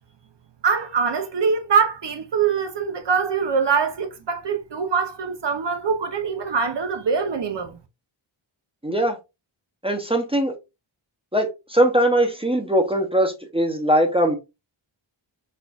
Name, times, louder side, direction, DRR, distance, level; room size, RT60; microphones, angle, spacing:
voice 1, 0.6-7.8, right 6 dB, 60° right, 0.6 m, -23 dB
voice 2, 8.8-9.2 9.8-10.5 11.3-14.4, right 1 dB, 10° right, 0.6 m, -21 dB
4.3 x 2.4 x 2.3 m
wide cardioid pair, 70°, 49 cm